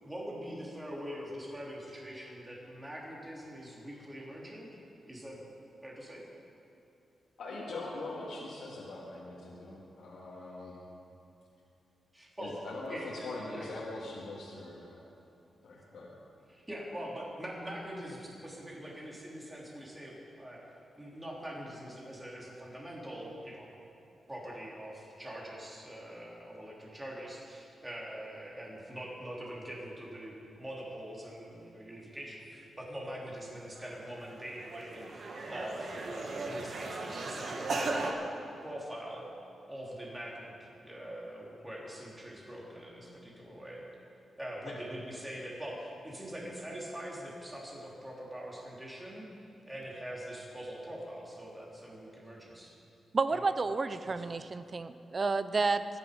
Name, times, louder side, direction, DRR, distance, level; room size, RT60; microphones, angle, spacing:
voice 1, 0.0-4.7 5.0-5.4 5.8-6.2 12.1-12.6 12.9-13.7 16.5-20.6 21.0-23.7 24.3-38.0 38.6-39.3 39.7-43.8 44.4-49.3 49.6-52.7 53.3-53.4 54.0-54.2, equal, 10° right, -4 dB, 3.1 m, -43 dB
voice 2, 7.4-10.8 12.4-15.0 15.6-16.1 38.4-38.5 44.7-44.8, left 2 dB, 75° left, -6 dB, 2.5 m, -42 dB
sound 1, 33.8-33.9 34.2-38.1, right 3 dB, 50° right, 1.6 m, -37 dB
voice 3, 53.1-55.9, right 4 dB, 30° right, 12 dB, 0.6 m, -30 dB
24.0 x 10.0 x 5.2 m, 2.9 s
wide cardioid pair, 145°, 0 cm